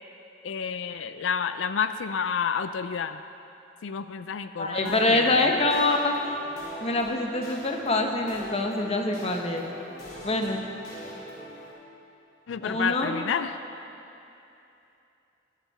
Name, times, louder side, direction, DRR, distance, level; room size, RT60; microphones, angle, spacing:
voice 1, 0.4-3.2 3.8-5.5 12.5-13.6, left 6 dB, 90° left, 11 dB, 0.4 m, -30 dB
voice 2, 4.6-6.4 6.8-9.7 10.2-10.6 12.6-13.1, left 2 dB, 35° left, 3 dB, 1.1 m, -25 dB
sound 1, 4.8-11.7, equal, 55° left, 3.6 m, -42 dB
21.0 x 9.4 x 4.2 m, 2.9 s
head